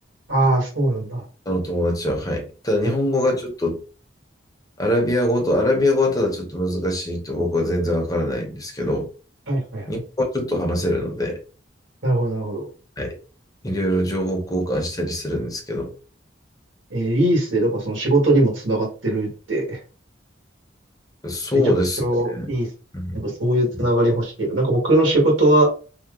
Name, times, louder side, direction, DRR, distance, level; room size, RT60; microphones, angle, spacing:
voice 1, 0.3-1.2 2.8-2.9 9.5-9.9 12.0-12.6 16.9-19.8 22.0-22.7 23.1-25.7, right 1 dB, 85° right, 1.5 m, -20 dB
voice 2, 1.5-3.8 4.8-9.1 9.9-11.4 13.0-13.2 13.6-15.9 21.2-22.5 22.9-23.3 23.7-23.8, left 1 dB, 20° left, 0.8 m, -23 dB
2.9 x 2.0 x 3.7 m
head